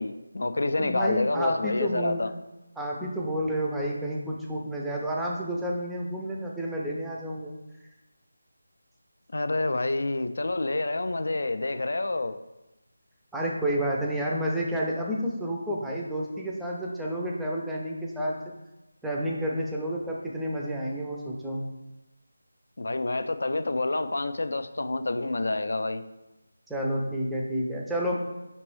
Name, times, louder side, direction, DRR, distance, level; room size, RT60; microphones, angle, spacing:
voice 1, 0.0-2.3 9.3-12.4 22.8-26.0, left 2 dB, 65° left, 10 dB, 0.3 m, -28 dB
voice 2, 0.8-2.3 2.8-7.5 13.3-18.4 19.0-21.7 26.7-28.2, equal, 5° right, -3 dB, 0.4 m, -30 dB
5.2 x 2.9 x 3.1 m, 0.99 s
figure-of-eight pair, 165°, 0 cm